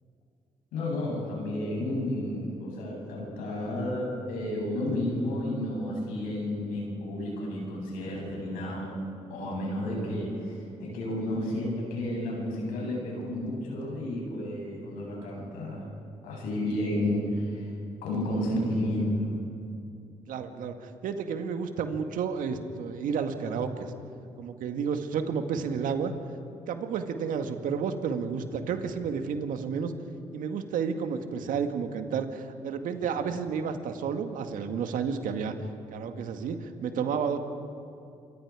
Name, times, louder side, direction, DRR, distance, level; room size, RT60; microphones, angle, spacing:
voice 1, 0.7-8.9 9.3-15.9 16.2-17.7 18.0-19.3, left 1 dB, 85° left, -2 dB, 7.9 m, -31 dB
voice 2, 20.3-23.9 24.4-26.1 26.7-29.9 30.3-35.5 35.9-37.4, right 6 dB, 75° right, 6 dB, 1.8 m, -31 dB
27.5 x 25.0 x 4.9 m, 2.5 s
hypercardioid pair, 45°, 14 cm